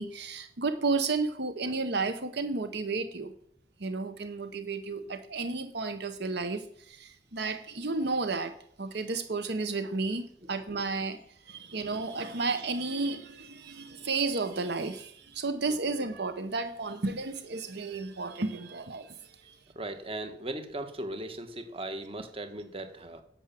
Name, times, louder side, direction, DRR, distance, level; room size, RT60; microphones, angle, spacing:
voice 1, 0.0-3.3 3.8-19.6, right 3 dB, 65° right, 10 dB, 0.9 m, -32 dB
voice 2, 19.7-23.2, right 1 dB, 30° right, 8 dB, 1.4 m, -38 dB
11.0 x 7.1 x 7.4 m, 0.70 s
head